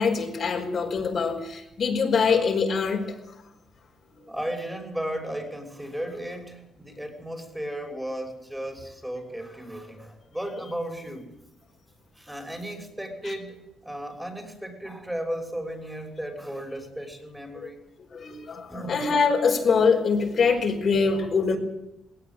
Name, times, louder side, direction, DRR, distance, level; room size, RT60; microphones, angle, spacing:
voice 1, 0.0-3.2 17.6-17.7 18.1-21.6, left 5 dB, 55° left, 2 dB, 5.3 m, -23 dB
voice 2, 4.3-11.3 12.2-17.8 18.7-19.0, right 1 dB, 5° right, 3 dB, 6.1 m, -35 dB
19.5 x 18.5 x 9.3 m, 0.88 s
cardioid pair, 90°, 0 cm